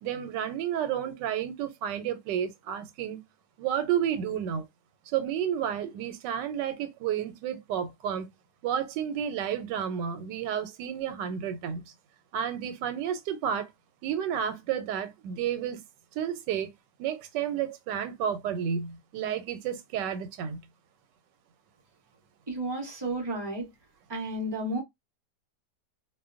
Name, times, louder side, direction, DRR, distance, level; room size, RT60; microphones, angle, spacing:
voice 1, 0.0-3.2 3.6-4.7 5.1-8.3 8.6-11.9 12.3-13.7 14.0-15.8 16.1-16.7 17.0-20.6, right 9 dB, 85° right, 1.2 m, -31 dB
voice 2, 22.5-23.7 24.1-24.8, right 1 dB, 40° right, 0.3 m, -32 dB
2.7 x 2.2 x 2.4 m
omnidirectional pair, 1.8 m